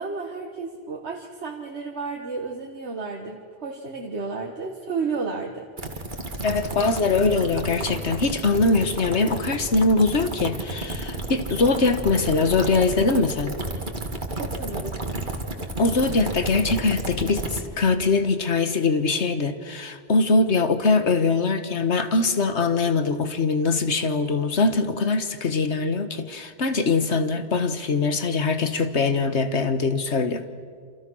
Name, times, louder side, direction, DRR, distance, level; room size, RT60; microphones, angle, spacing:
voice 1, 0.0-5.7 14.3-15.0, right 4 dB, 80° right, 1.8 m, -32 dB
sound 1, 5.8-17.6, right 2 dB, 45° right, 2.2 m, -32 dB
voice 2, 6.4-13.6 15.8-30.5, left 3 dB, 85° left, 1.7 m, -22 dB
28.0 x 27.5 x 6.3 m
omnidirectional pair, 1.1 m